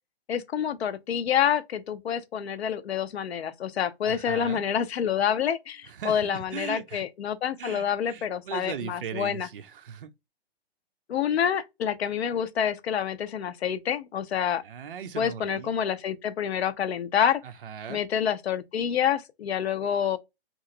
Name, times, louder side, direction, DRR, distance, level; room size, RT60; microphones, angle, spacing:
voice 1, 0.3-9.5 11.1-14.6 15.2-17.4 17.9-20.2, left 8 dB, 80° left, 0.6 m, -27 dB
voice 2, 4.0-4.6 5.9-7.0 7.6-10.1 14.6-15.7 17.4-18.0, right 7 dB, 55° right, 0.5 m, -38 dB
2.9 x 2.4 x 2.8 m
hypercardioid pair, 175°, 32 cm